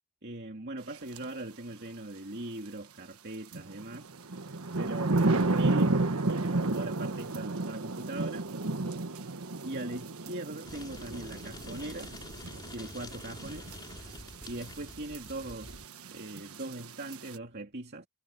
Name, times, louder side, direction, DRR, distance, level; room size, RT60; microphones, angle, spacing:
voice 1, 0.2-4.4 4.8-6.0 6.3-8.5 9.6-12.1 12.7-13.7 14.5-18.1, right 2 dB, 50° right, 2.5 m, -40 dB
sound 1, 1.1-1.2 3.5-17.4, right 2 dB, 80° right, 1.3 m, -32 dB
sound 2, 10.6-15.9, left 2 dB, 20° left, 3.5 m, -47 dB
head